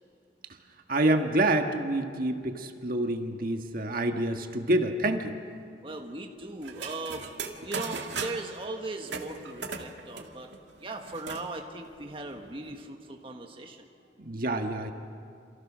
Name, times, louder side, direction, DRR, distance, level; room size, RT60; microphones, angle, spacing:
voice 1, 0.9-5.3 14.2-14.9, right 1 dB, 55° right, 4 dB, 1.6 m, -27 dB
voice 2, 5.8-7.2 7.6-10.5 10.8-13.9, right 2 dB, 30° right, 2 dB, 1.5 m, -38 dB
sound 1, 6.6-8.6 9.0-11.5 11.8-11.9 12.2-12.8, right 5 dB, 80° right, 2.1 m, -38 dB
28.0 x 27.5 x 6.3 m, 2.4 s
head